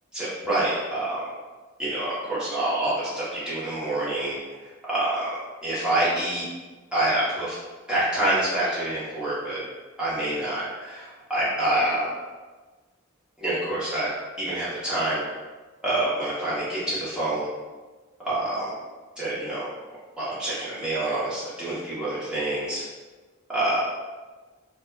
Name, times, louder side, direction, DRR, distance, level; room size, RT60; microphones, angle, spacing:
voice 1, 0.1-1.2 1.8-5.3 5.6-6.4 6.9-7.6 7.9-9.6 10.0-12.1 13.4-14.1 14.4-15.2 15.8-17.5 18.2-18.7 19.2-19.7 20.2-22.8 23.5-23.8, right 1 dB, 5° right, -11 dB, 0.8 m, -27 dB
3.2 x 2.1 x 2.2 m, 1.3 s
head